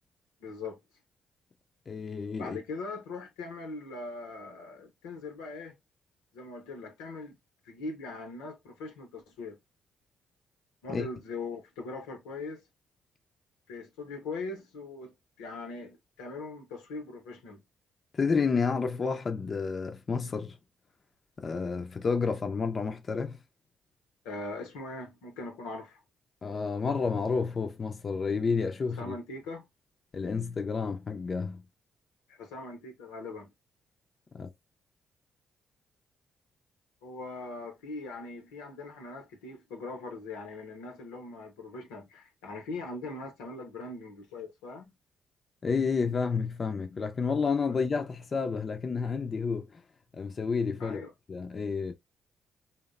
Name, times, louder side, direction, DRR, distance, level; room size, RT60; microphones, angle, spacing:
voice 1, 0.4-0.8 2.4-5.8 6.3-7.4 7.6-9.6 10.8-12.6 13.7-17.6 24.2-26.0 29.0-29.7 32.3-33.5 37.0-44.9 50.8-51.1, left 3 dB, 85° left, 0.6 m, -41 dB
voice 2, 1.9-2.6 10.9-11.1 18.1-20.6 21.4-23.4 26.4-29.2 30.1-31.6 34.3-34.5 45.6-49.8 50.1-51.0 51.3-51.9, left 5 dB, 45° left, 0.4 m, -30 dB
2.8 x 2.0 x 2.3 m
hypercardioid pair, 50°, 0 cm